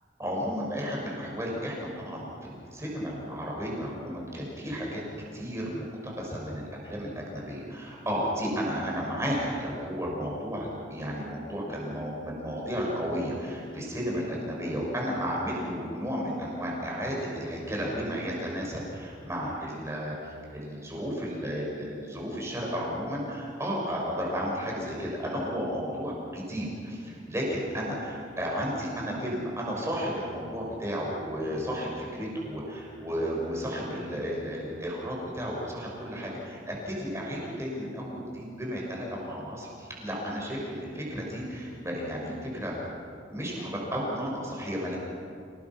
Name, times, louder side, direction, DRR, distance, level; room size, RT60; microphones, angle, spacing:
voice 1, 0.2-5.0 5.3-20.1 20.5-42.7 43.3-45.0, equal, 15° right, -3 dB, 6.0 m, -33 dB
28.5 x 18.5 x 6.1 m, 2.4 s
head